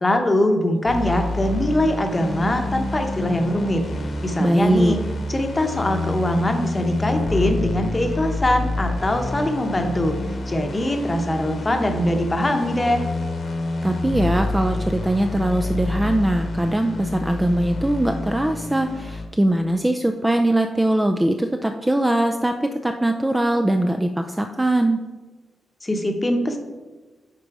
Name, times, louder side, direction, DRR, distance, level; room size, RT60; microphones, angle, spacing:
voice 1, 0.0-3.9 4.2-5.0 5.3-10.2 10.5-13.0 25.8-26.6, left 1 dB, 20° left, 5 dB, 0.9 m, -22 dB
sound 1, 0.8-19.3, left 2 dB, 45° left, 1.1 m, -28 dB
voice 2, 4.4-5.0 13.8-25.0, right 1 dB, 10° right, 5 dB, 0.4 m, -21 dB
9.9 x 4.0 x 4.8 m, 1.3 s
wide cardioid pair, 145°, 0 cm